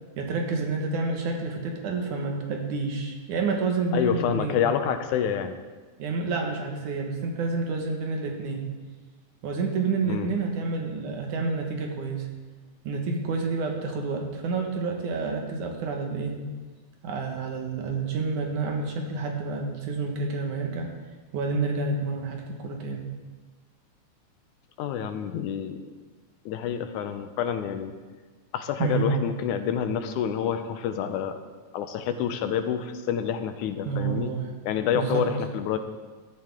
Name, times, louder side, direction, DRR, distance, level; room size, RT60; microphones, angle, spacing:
voice 1, 0.2-4.6 6.0-8.6 9.4-12.3 12.8-16.5 17.0-20.9 21.3-23.1 28.8-29.1 33.9-34.5 34.9-35.3, right 4 dB, 80° right, 2 dB, 3.0 m, -29 dB
voice 2, 3.9-5.6 10.0-10.3 24.8-25.9 26.5-27.9 28.5-31.4 31.7-34.3 34.6-35.8, left 8 dB, 85° left, 8 dB, 2.3 m, -28 dB
16.0 x 12.0 x 3.7 m, 1.4 s
omnidirectional pair, 3.5 m